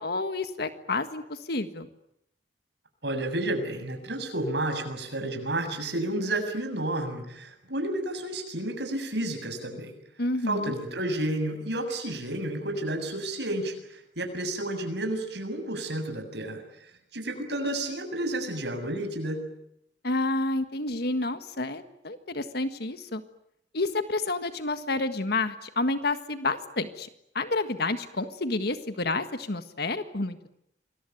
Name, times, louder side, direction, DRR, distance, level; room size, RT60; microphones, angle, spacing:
voice 1, 0.0-1.9 10.2-10.7 20.0-23.2 23.7-27.1 27.4-30.6, left 2 dB, 60° left, 9 dB, 1.7 m, -29 dB
voice 2, 3.0-9.9 10.5-16.6 17.1-19.4, right 1 dB, 70° right, 6 dB, 7.3 m, -31 dB
28.0 x 22.0 x 9.4 m, 0.77 s
head